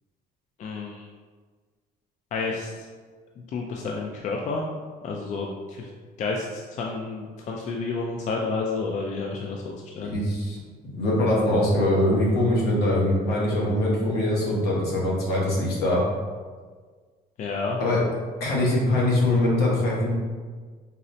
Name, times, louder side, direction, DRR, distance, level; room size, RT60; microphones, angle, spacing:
voice 1, 0.6-1.1 2.3-2.7 3.5-4.7 5.0-5.9 6.2-10.1 17.4-17.8, left 4 dB, 45° left, -1 dB, 0.4 m, -30 dB
voice 2, 10.0-10.6 10.9-16.0 17.8-18.0 18.4-20.1, left 1 dB, 75° left, -5 dB, 1.0 m, -22 dB
3.9 x 2.0 x 2.7 m, 1.5 s
cardioid pair, 110°, 17 cm